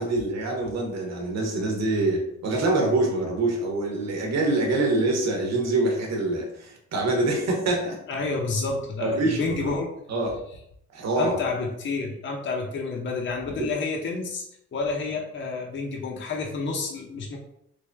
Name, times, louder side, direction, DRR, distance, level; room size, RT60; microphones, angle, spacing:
voice 1, 0.0-8.0 9.0-9.7 10.1-10.4 10.9-11.4 13.6-13.7, right 2 dB, 60° right, 1 dB, 1.0 m, -25 dB
voice 2, 8.1-9.9 11.2-14.4 14.7-17.4, left 3 dB, 40° left, 0 dB, 0.7 m, -29 dB
3.2 x 2.6 x 3.3 m, 0.75 s
cardioid pair, 90°, 30 cm